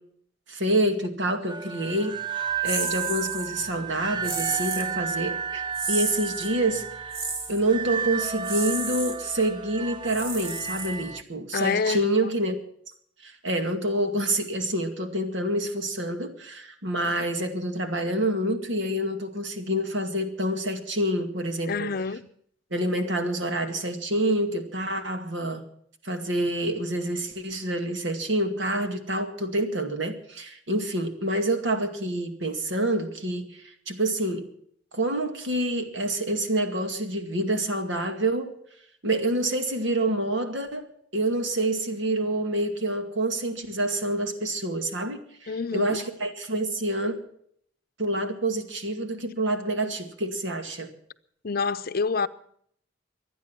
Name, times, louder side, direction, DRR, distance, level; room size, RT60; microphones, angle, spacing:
voice 1, 0.5-5.6 5.9-7.2 7.5-12.6 13.2-21.9 22.7-25.7 26.0-34.5 34.9-38.5 39.0-47.2 48.0-50.9, right 1 dB, 70° right, 2.2 m, -27 dB
sound 1, 1.5-11.2, right 7 dB, 25° right, 0.6 m, -33 dB
sound 2, 2.7-3.5 4.2-4.9 5.7-6.5 7.1-7.6 8.4-9.2 10.0-11.2, right 3 dB, 50° right, 3.0 m, -33 dB
voice 2, 11.5-12.1 21.7-22.3 45.5-46.0 51.4-52.3, left 5 dB, 50° left, 0.7 m, -27 dB
24.5 x 9.4 x 5.9 m
head